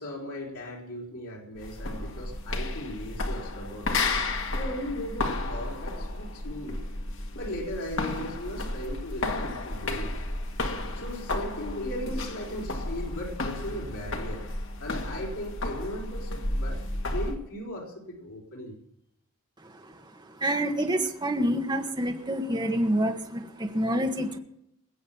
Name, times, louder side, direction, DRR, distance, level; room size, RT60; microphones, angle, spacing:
voice 1, 0.0-3.9 4.5-6.8 7.4-10.1 10.9-14.4 14.8-16.8 17.1-18.7, left 1 dB, 75° left, -3 dB, 4.7 m, -37 dB
sound 1, 1.6-17.4, left 2 dB, 60° left, 1.9 m, -32 dB
voice 2, 20.4-24.4, right 1 dB, 20° right, 3 dB, 1.5 m, -27 dB
20.0 x 7.9 x 7.2 m, 0.78 s
head